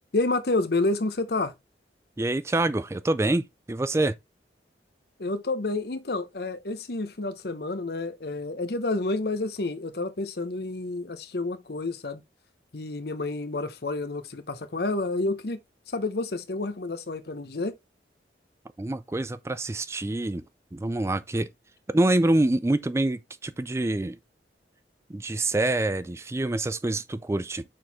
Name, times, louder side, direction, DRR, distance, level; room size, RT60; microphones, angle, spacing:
voice 1, 0.1-1.5 5.2-12.2 12.7-15.6 15.9-17.7, left 2 dB, 55° left, 0.8 m, -29 dB
voice 2, 2.2-4.2 18.8-20.4 20.7-21.5 21.9-24.2 25.1-27.6, right 2 dB, 15° right, 0.3 m, -26 dB
6.3 x 4.6 x 3.4 m
head